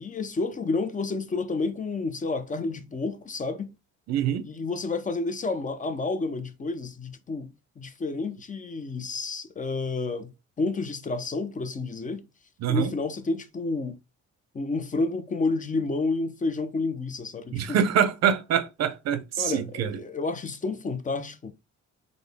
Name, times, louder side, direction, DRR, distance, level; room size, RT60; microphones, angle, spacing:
voice 1, 0.0-3.7 4.4-7.5 7.8-10.3 10.6-12.3 12.7-14.0 14.5-17.8 19.4-21.5, left 3 dB, 25° left, 0.5 m, -30 dB
voice 2, 4.1-4.5 12.6-12.9 17.5-20.0, right 8 dB, 60° right, 0.5 m, -25 dB
3.8 x 2.1 x 3.4 m
cardioid pair, 90°, 30 cm